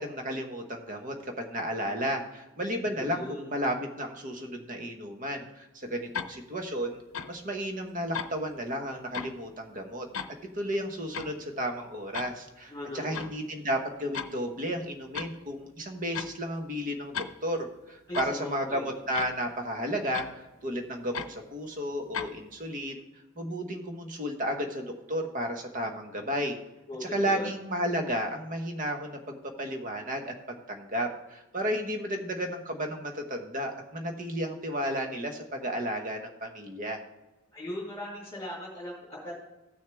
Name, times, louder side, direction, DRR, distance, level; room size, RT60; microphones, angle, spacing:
voice 1, 0.0-7.0 7.3-10.1 10.5-20.3 20.6-23.0 23.4-26.6 27.0-37.0, equal, 40° right, 4 dB, 1.2 m, -33 dB
voice 2, 2.8-3.5 12.7-13.3 18.1-19.0 26.9-27.5 37.5-39.3, left 1 dB, 20° left, -9 dB, 2.9 m, -39 dB
sound 1, 6.1-6.3 7.1-7.4 8.1-8.3 9.1-9.3 10.1-10.3 11.1-11.3 12.1-12.3 13.1-13.3 14.1-14.3 15.1-15.3 16.1-16.3 17.1-17.3 18.1-18.4 19.1-19.4 20.1-20.3 21.1-21.3 22.1-22.4, left 7 dB, 80° left, 0.6 m, -35 dB
15.0 x 6.5 x 3.5 m, 1.0 s
head